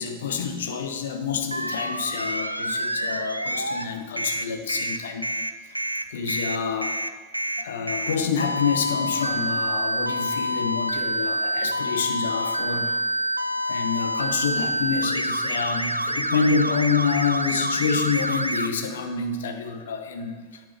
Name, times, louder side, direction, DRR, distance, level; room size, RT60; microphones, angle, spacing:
voice 1, 0.0-5.3 5.6-5.7 6.1-6.9 7.6-13.0 13.6-20.6, left 6 dB, 60° left, 6 dB, 0.8 m, -27 dB
sound 1, 1.5-3.9 4.2-18.7, right 1 dB, 85° right, 0.3 m, -27 dB
8.8 x 8.8 x 3.3 m, 1.4 s
figure-of-eight pair, 90°, 0 cm